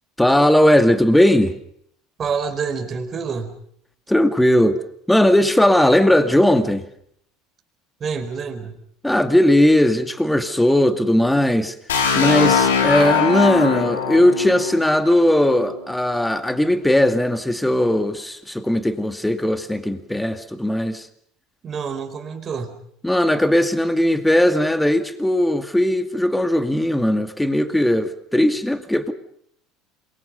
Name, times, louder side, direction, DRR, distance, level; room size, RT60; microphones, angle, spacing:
voice 1, 0.2-1.6 4.1-4.8 5.1-6.9 9.0-11.7 12.2-21.1 23.0-29.1, left 1 dB, 5° left, 9 dB, 2.3 m, -18 dB
voice 2, 2.2-3.5 8.0-8.8 21.6-22.8, right 5 dB, 35° right, 5 dB, 4.6 m, -27 dB
sound 1, 11.9-15.7, left 6 dB, 85° left, 4.0 m, -21 dB
27.5 x 23.0 x 5.4 m, 0.68 s
hypercardioid pair, 80°, 0 cm